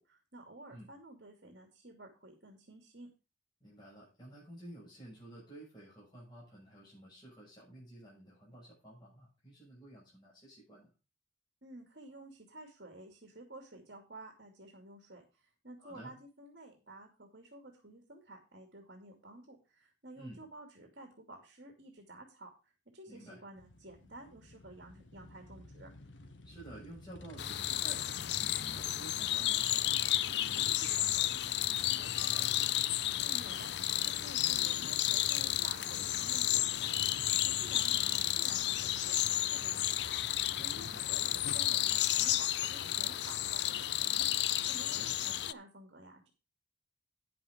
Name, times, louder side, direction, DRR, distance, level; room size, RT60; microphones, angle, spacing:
voice 1, 0.0-3.1 11.6-25.9 33.2-40.2 40.6-46.3, right 1 dB, 60° right, 3 dB, 2.7 m, -52 dB
voice 2, 3.6-10.9 15.8-16.1 20.2-20.4 23.1-23.4 26.4-32.6 40.7-41.1 44.8-45.1, right 1 dB, 25° left, -7 dB, 7.1 m, -52 dB
sound 1, 23.6-41.6, left 1 dB, 80° left, 1.4 m, -52 dB
sound 2, 27.4-45.5, left 13 dB, 60° left, 0.5 m, -32 dB
9.9 x 7.8 x 5.1 m, 0.30 s
head